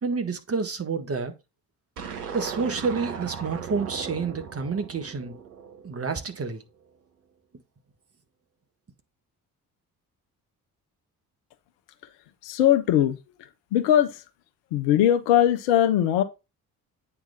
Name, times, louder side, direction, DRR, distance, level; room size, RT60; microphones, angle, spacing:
voice 1, 0.0-1.3 2.3-5.3 5.8-6.6, right 4 dB, 30° right, 1.7 m, -29 dB
sound 1, 2.0-6.3, right 7 dB, 80° right, 1.0 m, -37 dB
voice 2, 12.4-13.2 13.7-14.2 14.7-16.2, left 11 dB, 65° left, 1.1 m, -20 dB
8.6 x 3.4 x 5.9 m
figure-of-eight pair, 45°, 45 cm